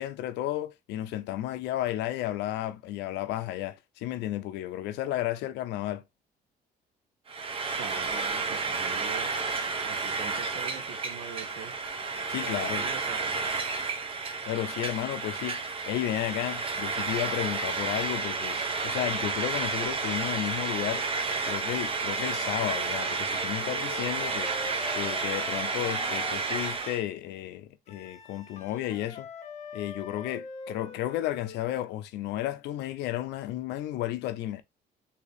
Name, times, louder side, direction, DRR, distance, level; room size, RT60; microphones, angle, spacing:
voice 1, 0.0-6.0 12.3-12.9 14.5-21.1 21.4-24.5 24.9-29.3 29.7-34.6, left 13 dB, 85° left, 0.5 m, -33 dB
Frying (food), 7.3-27.0, right 4 dB, 35° right, 0.7 m, -31 dB
voice 2, 7.8-9.3 9.8-11.7 12.4-13.3, right 8 dB, 75° right, 0.8 m, -42 dB
Wind instrument woodwind instrument, 23.6-27.1 27.9-31.6, left 6 dB, 40° left, 0.8 m, -43 dB
3.8 x 2.8 x 3.3 m
cardioid pair, 110°, 17 cm